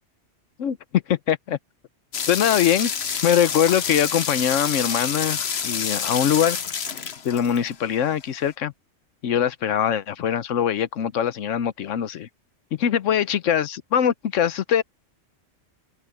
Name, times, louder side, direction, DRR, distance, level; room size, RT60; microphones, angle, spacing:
voice 1, 0.6-1.6 2.3-2.9 3.2-6.6 7.2-8.7 9.2-12.3 12.7-14.8, left 9 dB, 85° left, 1.1 m, -22 dB
sound 1, 2.1-8.0, left 7 dB, 60° left, 1.2 m, -28 dB
open air
omnidirectional pair, 1.3 m